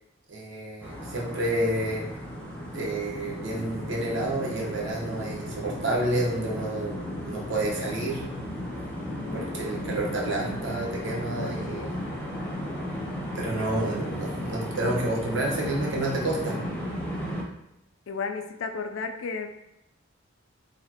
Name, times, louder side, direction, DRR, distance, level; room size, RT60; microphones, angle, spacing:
voice 1, 0.3-2.0 2.7-6.9 7.2-8.3 9.3-12.0 13.3-16.6, right 1 dB, 60° right, -3 dB, 1.0 m, -29 dB
sound 1, 0.8-17.4, equal, 5° left, 0.6 m, -35 dB
voice 2, 9.1-9.5 11.3-12.0 18.1-19.5, left 5 dB, 70° left, 6 dB, 0.4 m, -34 dB
4.1 x 3.1 x 2.8 m, 0.87 s
head